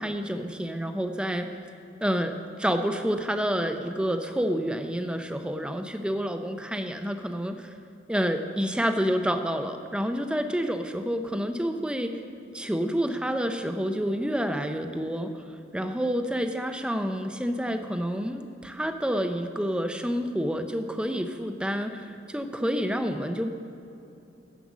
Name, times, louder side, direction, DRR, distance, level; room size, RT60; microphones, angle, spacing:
voice 1, 0.0-1.5 2.0-7.7 8.1-12.1 12.5-15.3 15.7-23.5, equal, 5° right, 7 dB, 0.5 m, -28 dB
10.0 x 7.6 x 7.2 m, 2.9 s
head